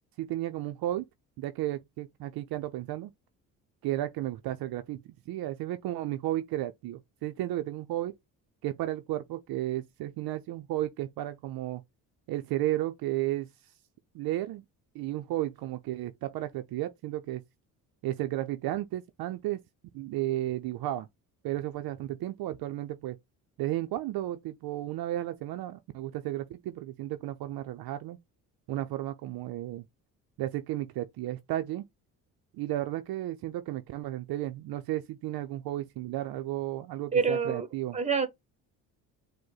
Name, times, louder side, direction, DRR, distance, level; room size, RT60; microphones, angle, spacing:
voice 1, 0.2-1.0 1.4-3.1 3.8-8.1 8.6-11.8 12.3-13.5 14.1-14.6 14.9-17.4 18.0-19.6 19.9-21.1 21.4-23.2 23.6-28.2 28.7-29.9 30.4-31.8 32.5-38.0, right 14 dB, 65° right, 0.5 m, -33 dB
voice 2, 37.1-37.7 37.9-38.3, right 5 dB, 15° right, 1.1 m, -26 dB
5.0 x 2.2 x 3.9 m
supercardioid pair, 70°, 40 cm